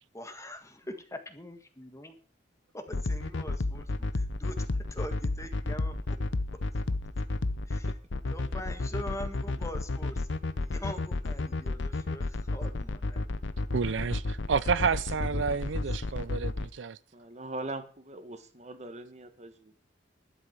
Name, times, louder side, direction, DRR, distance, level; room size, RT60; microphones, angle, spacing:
voice 1, 0.1-2.2 2.7-6.2 7.7-7.9 8.3-10.3 10.6-13.3 14.7-15.0 15.4-15.5 16.0-16.1, left 1 dB, 15° left, 1.7 m, -43 dB
sound 1, 2.9-16.7, left 2 dB, 90° left, 0.8 m, -31 dB
voice 2, 13.7-17.0, right 5 dB, 80° right, 0.5 m, -30 dB
voice 3, 17.1-19.9, right 2 dB, 40° right, 1.5 m, -41 dB
12.0 x 7.9 x 7.4 m
head